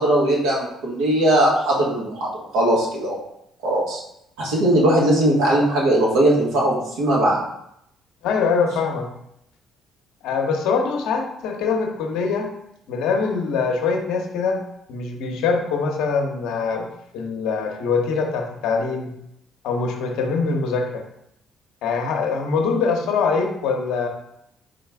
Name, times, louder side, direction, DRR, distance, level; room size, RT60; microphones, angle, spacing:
voice 1, 0.0-2.3 2.5-3.1 3.6-4.0 4.4-7.4, right 1 dB, 80° right, -5 dB, 1.3 m, -19 dB
voice 2, 8.2-9.1 10.2-12.5 12.9-14.6 14.9-16.9 17.1-19.1 19.6-21.0 21.8-24.1, left 5 dB, 75° left, 3 dB, 0.7 m, -23 dB
3.9 x 3.8 x 3.4 m, 0.78 s
hypercardioid pair, 55°, 0 cm